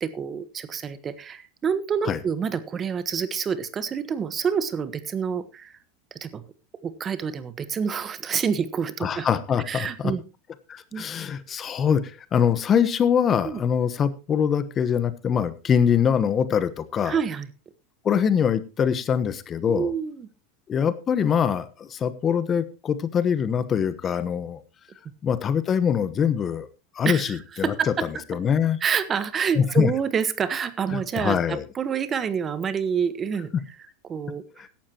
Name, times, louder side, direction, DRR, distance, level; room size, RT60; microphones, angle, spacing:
voice 1, 0.0-5.7 6.2-6.4 6.8-9.3 9.7-10.2 10.9-11.1 13.4-13.6 17.1-17.5 19.7-20.3 27.0-28.0 28.8-33.5 34.0-34.4, right 7 dB, 30° right, 13 dB, 1.3 m, -27 dB
voice 2, 9.0-10.1 10.7-17.2 18.0-19.9 20.7-24.6 25.2-26.7 26.9-27.7 28.3-28.8 29.6-29.9 30.9-31.6, left 7 dB, 30° left, 14 dB, 1.1 m, -23 dB
16.5 x 12.0 x 3.0 m, 0.29 s
hypercardioid pair, 100°, 0 cm